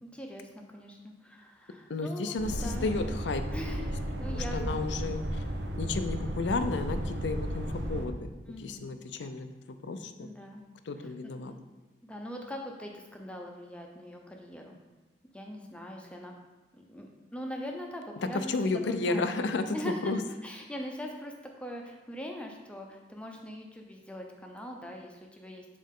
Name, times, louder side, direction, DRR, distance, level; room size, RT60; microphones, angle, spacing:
voice 1, 0.0-2.9 3.5-4.8 8.5-8.9 10.2-10.6 11.0-11.6 12.0-14.8 15.3-16.4 16.7-19.3 19.7-20.1 20.4-25.6, equal, 5° left, 1 dB, 0.6 m, -42 dB
voice 2, 1.9-3.4 4.3-5.4 5.8-8.3 8.6-10.3 10.8-11.5 18.3-20.2, left 3 dB, 75° left, 9 dB, 0.5 m, -32 dB
sound 1, 2.4-8.1, right 1 dB, 65° right, 0.7 m, -34 dB
7.5 x 4.1 x 3.7 m, 1.2 s
head